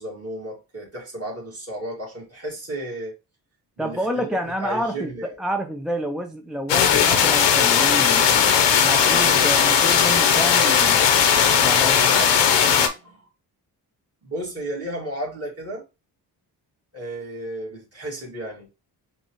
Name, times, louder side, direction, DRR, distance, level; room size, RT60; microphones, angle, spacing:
voice 1, 0.0-3.1 3.8-5.4 11.8-13.3 14.2-15.8 16.9-18.7, right 1 dB, 35° right, 2.0 m, -34 dB
voice 2, 3.8-11.1 11.6-12.0, equal, ahead, 0.3 m, -29 dB
sound 1, 6.7-12.9, left 7 dB, 85° left, 0.7 m, -17 dB
5.2 x 2.3 x 3.0 m
cardioid pair, 95°, 42 cm